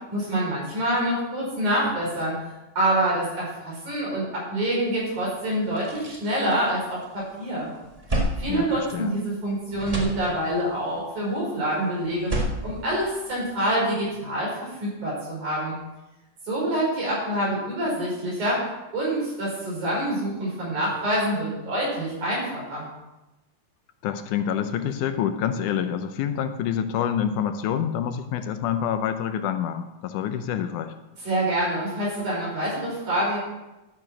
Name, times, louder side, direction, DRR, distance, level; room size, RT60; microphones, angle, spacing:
voice 1, 0.1-2.4 2.8-7.7 8.4-12.3 12.6-15.8 16.5-18.6 18.9-22.8 31.2-33.4, right 1 dB, 65° right, -5 dB, 6.7 m, -26 dB
sound 1, 5.1-5.2 5.5-7.2 7.6-9.4 9.7-10.8 12.0-13.7, right 1 dB, 30° right, 0.7 m, -31 dB
voice 2, 8.5-9.1 24.0-30.9, left 9 dB, 80° left, 9 dB, 2.2 m, -27 dB
12.5 x 6.7 x 6.2 m, 1.0 s
omnidirectional pair, 3.6 m